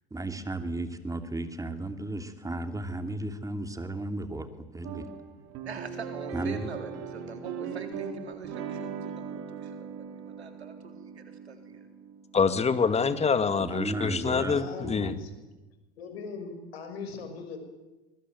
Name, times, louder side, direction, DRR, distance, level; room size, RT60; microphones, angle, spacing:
voice 1, 0.1-5.1 6.3-6.7 13.6-15.1, right 2 dB, 10° right, 7 dB, 2.9 m, -34 dB
sound 1, 4.8-13.3, right 6 dB, 50° right, 4.1 m, -40 dB
voice 2, 5.6-11.9, right 5 dB, 90° right, 6 dB, 3.8 m, -44 dB
voice 3, 12.3-15.2, left 5 dB, 20° left, 11 dB, 2.3 m, -26 dB
voice 4, 14.2-15.3 16.0-17.6, left 5 dB, 75° left, 7 dB, 6.5 m, -40 dB
24.0 x 22.0 x 9.5 m, 1.1 s
hypercardioid pair, 85°, 31 cm